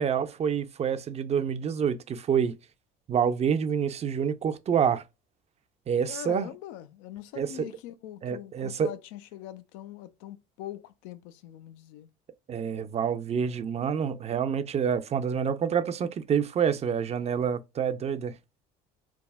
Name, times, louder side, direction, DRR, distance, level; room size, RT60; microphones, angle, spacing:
voice 1, 0.0-2.5 3.1-5.0 5.9-6.5 7.4-7.7 8.2-8.9 12.5-18.3, right 7 dB, 35° right, 0.4 m, -27 dB
voice 2, 6.1-12.1, left 13 dB, 80° left, 0.4 m, -42 dB
3.4 x 2.0 x 2.2 m
supercardioid pair, 80°, 20 cm